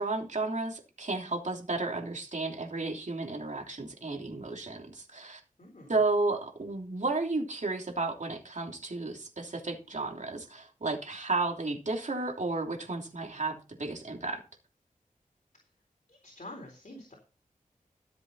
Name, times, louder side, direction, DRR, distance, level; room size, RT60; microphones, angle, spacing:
voice 1, 0.0-5.4 5.9-14.4, right 3 dB, 55° right, 1 dB, 3.1 m, -33 dB
voice 2, 5.6-6.0 15.5-15.7 16.1-17.2, left 1 dB, 55° left, 0 dB, 4.0 m, -47 dB
13.5 x 7.8 x 4.2 m, 0.32 s
wide cardioid pair, 55°, 15 cm